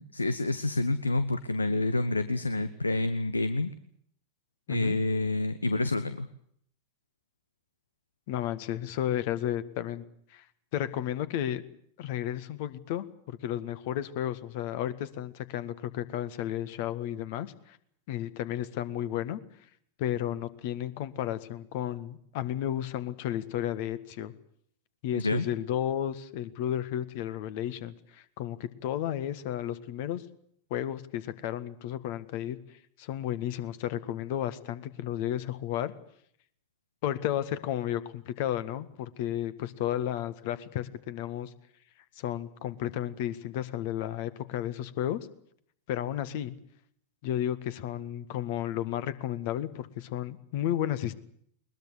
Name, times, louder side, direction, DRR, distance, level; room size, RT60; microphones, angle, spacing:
voice 1, 0.0-3.7 4.7-6.3 25.1-25.5, left 2 dB, 80° left, 13 dB, 1.0 m, -28 dB
voice 2, 8.3-10.0 10.3-10.4 10.7-11.6 12.0-17.8 18.1-19.4 20.0-24.3 25.0-30.2 30.7-35.9 37.0-41.5 42.2-45.2 45.9-46.6 47.2-51.1, left 11 dB, 50° left, 14 dB, 1.8 m, -33 dB
21.5 x 21.0 x 8.2 m, 0.67 s
figure-of-eight pair, 90°, 0 cm